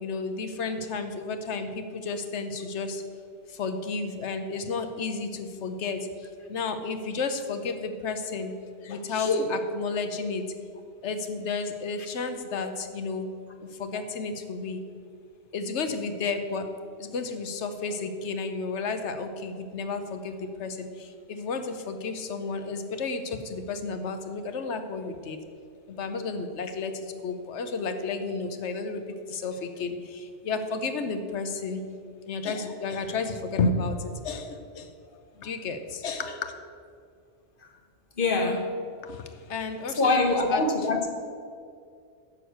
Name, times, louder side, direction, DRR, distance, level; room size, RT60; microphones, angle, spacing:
voice 1, 0.0-3.0 3.6-6.1 6.5-8.5 8.8-10.4 11.0-13.3 13.8-14.8 15.5-16.7 17.0-25.4 25.9-29.0 29.3-31.8 32.3-34.9 35.4-36.5 39.0-39.2 39.5-40.6, left 4 dB, 80° left, 8 dB, 1.1 m, -32 dB
voice 2, 38.2-38.7 40.0-41.1, left 3 dB, 50° left, 4 dB, 1.2 m, -24 dB
11.0 x 5.0 x 7.8 m, 2.3 s
omnidirectional pair, 1.2 m